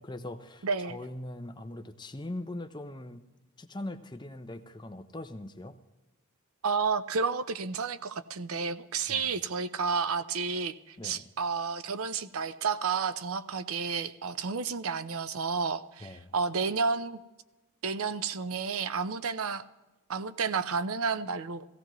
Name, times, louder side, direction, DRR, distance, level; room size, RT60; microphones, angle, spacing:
voice 1, 0.0-3.2 3.6-5.8 9.1-9.3 11.0-11.3 16.0-16.3, left 1 dB, 20° left, 9 dB, 0.6 m, -41 dB
voice 2, 0.6-1.0 6.6-17.2 17.8-19.6 20.1-21.7, right 5 dB, 75° right, 12 dB, 0.6 m, -31 dB
17.0 x 16.0 x 3.1 m, 1.1 s
head